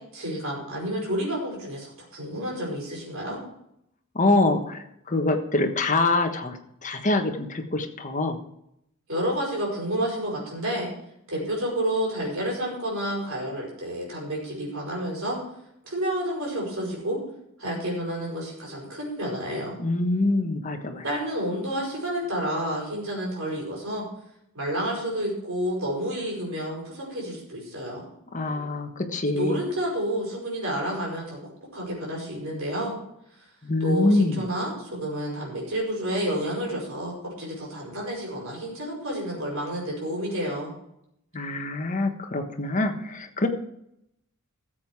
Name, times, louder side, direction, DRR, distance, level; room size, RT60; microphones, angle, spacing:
voice 1, 0.1-3.4 9.1-10.9 11.3-15.4 15.8-17.2 17.6-19.8 21.0-24.0 24.5-28.0 29.3-31.4 31.7-33.0 33.8-40.7, right 1 dB, 65° right, -3 dB, 5.2 m, -30 dB
voice 2, 4.1-8.4 19.8-21.0 28.3-29.6 33.6-34.4 41.3-43.5, left 2 dB, 35° left, 5 dB, 1.3 m, -25 dB
14.0 x 7.4 x 4.7 m, 0.77 s
head